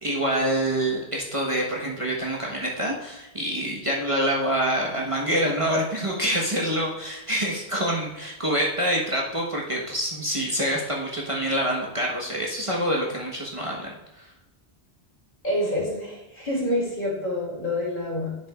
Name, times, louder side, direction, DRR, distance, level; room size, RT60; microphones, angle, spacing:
voice 1, 0.0-14.3, right 1 dB, 30° right, -3 dB, 1.3 m, -26 dB
voice 2, 15.4-18.4, left 1 dB, 50° left, -4 dB, 2.9 m, -27 dB
9.6 x 7.4 x 2.4 m, 1.0 s
omnidirectional pair, 1.1 m